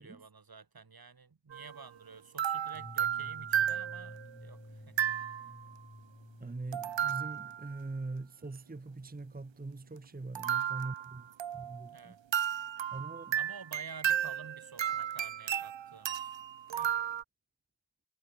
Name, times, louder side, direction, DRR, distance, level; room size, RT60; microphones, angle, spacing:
voice 1, 0.0-5.1 11.9-12.2 13.4-16.3 16.7-17.0, right 4 dB, 55° right, 2.1 m, -51 dB
sound 1, 1.5-1.8 2.4-4.3 5.0-5.6 6.7-7.7 10.3-11.9 12.3-17.2, right 10 dB, 80° right, 0.8 m, -33 dB
sound 2, 2.7-7.9, left 1 dB, 20° left, 4.6 m, -52 dB
voice 2, 6.4-11.3 11.5-12.2 12.9-13.4, right 3 dB, 20° right, 1.0 m, -42 dB
wide cardioid pair, 55°, 44 cm